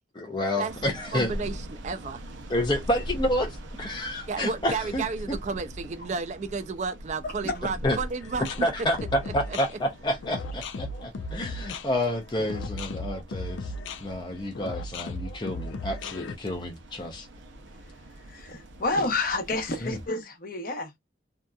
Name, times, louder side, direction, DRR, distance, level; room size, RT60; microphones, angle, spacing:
voice 1, 0.2-1.3 2.5-5.4 7.8-8.0 8.6-13.7 14.0-17.3 19.8-20.0, left 1 dB, 25° left, 0.5 m, -29 dB
sound 1, 0.7-20.1, equal, 85° right, 0.6 m, -42 dB
voice 2, 1.1-2.2 4.3-8.7 9.2-9.6, right 4 dB, 40° right, 0.4 m, -32 dB
sound 2, 8.2-16.4, left 2 dB, 85° left, 0.4 m, -36 dB
voice 3, 18.3-21.0, left 2 dB, 50° left, 0.8 m, -29 dB
2.7 x 2.3 x 2.2 m
head